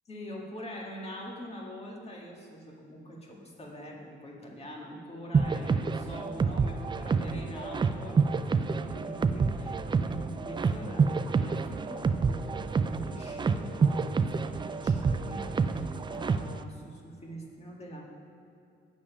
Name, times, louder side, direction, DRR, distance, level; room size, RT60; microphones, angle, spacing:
voice 1, 0.1-18.0, equal, 30° left, -1 dB, 2.0 m, -44 dB
sound 1, 5.3-16.6, right 5 dB, 25° right, 0.4 m, -28 dB
8.4 x 7.1 x 5.7 m, 2.6 s
cardioid pair, 90°, 20 cm